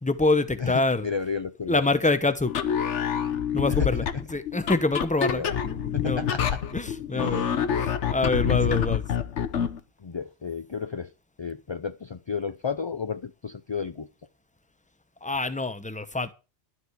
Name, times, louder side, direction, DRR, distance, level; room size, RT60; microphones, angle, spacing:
voice 1, 0.0-1.1 1.7-2.5 3.5-4.0 4.3-6.3 6.7-7.5 7.8-9.0 15.2-16.3, left 2 dB, 5° left, 0.8 m, -26 dB
voice 2, 0.6-1.9 3.7-4.2 5.3-5.6 5.9-6.6 7.1-7.6 8.7-8.8 10.0-11.1 11.4-14.1, left 5 dB, 40° left, 0.4 m, -33 dB
sound 1, 2.5-9.8, left 8 dB, 75° left, 1.2 m, -27 dB
13.0 x 4.8 x 8.0 m
omnidirectional pair, 1.2 m